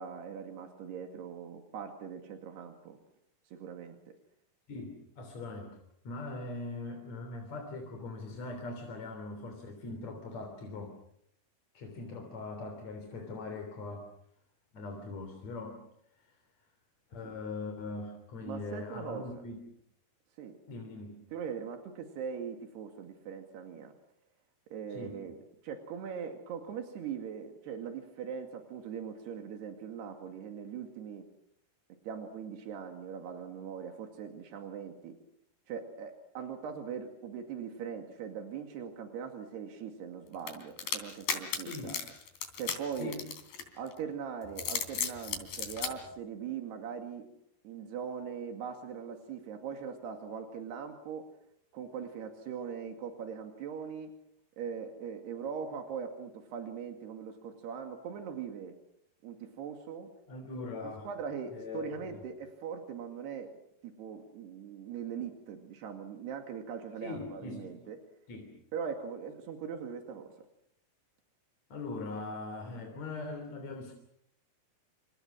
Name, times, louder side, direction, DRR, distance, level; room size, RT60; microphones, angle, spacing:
voice 1, 0.0-3.0 3.5-4.0 17.2-17.3 18.4-19.2 20.4-20.5 21.3-23.9 24.7-25.4 25.6-31.2 32.0-35.2 35.7-42.0 42.6-43.1 43.8-47.2 47.6-51.2 51.7-54.1 54.6-58.8 59.2-60.1 61.1-63.5 63.8-68.0 68.7-70.3, right 7 dB, 90° right, 4 dB, 4.3 m, -41 dB
voice 2, 4.7-5.8 6.0-11.0 11.7-14.1 14.7-15.8 16.1-16.4 17.1-19.6 20.7-21.2 24.9-25.2 41.6-42.0 43.0-43.3 60.3-61.1 61.5-62.2 67.0-67.8 68.3-68.5 71.7-73.9, left 3 dB, 45° left, 4 dB, 4.4 m, -41 dB
sound 1, 40.5-43.9 44.4-45.9, left 7 dB, 70° left, 5.1 m, -35 dB
29.0 x 27.5 x 6.3 m, 0.75 s
omnidirectional pair, 4.5 m